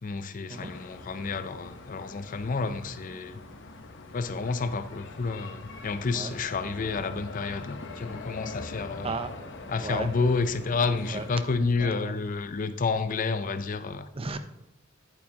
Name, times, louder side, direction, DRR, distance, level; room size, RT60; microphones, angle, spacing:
voice 1, 0.0-3.4 4.1-9.2 9.7-14.1, left 4 dB, 40° left, 0.5 m, -30 dB
sound 1, 0.5-11.4, left 3 dB, 65° left, 0.9 m, -43 dB
voice 2, 11.8-12.1 14.1-14.4, right 3 dB, 30° right, 0.6 m, -34 dB
11.0 x 8.7 x 2.8 m
head